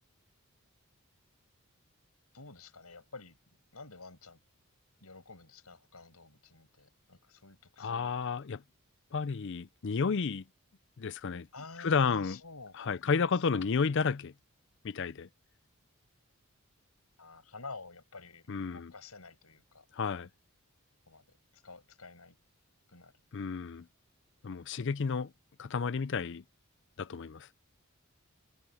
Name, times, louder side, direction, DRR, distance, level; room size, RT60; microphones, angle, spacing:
voice 1, 2.3-3.4 3.7-4.4 5.0-8.1 11.5-12.8 13.1-13.2 13.5-13.7 17.2-19.8 21.1-21.2 21.5-22.3 22.9-23.1, left 3 dB, 90° left, 6.6 m, -50 dB
voice 2, 7.8-8.6 9.1-10.4 11.0-11.5 11.8-12.4 12.7-14.3 14.8-15.3 18.5-18.9 19.9-20.3 23.3-23.9 24.4-25.3 25.6-26.4 27.0-27.5, left 5 dB, 55° left, 0.5 m, -31 dB
head